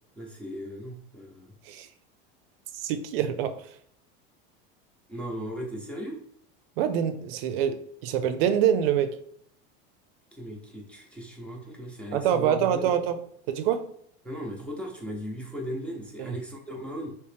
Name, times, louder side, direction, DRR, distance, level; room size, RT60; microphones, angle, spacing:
voice 1, 0.2-1.5 5.1-6.2 10.3-12.9 14.2-17.1, equal, 5° left, 0.7 m, -37 dB
voice 2, 2.7-3.7 6.8-9.2 12.1-13.2 13.5-13.9 16.2-16.3, right 9 dB, 80° right, 0.5 m, -25 dB
3.1 x 2.9 x 3.3 m
supercardioid pair, 135°, 29 cm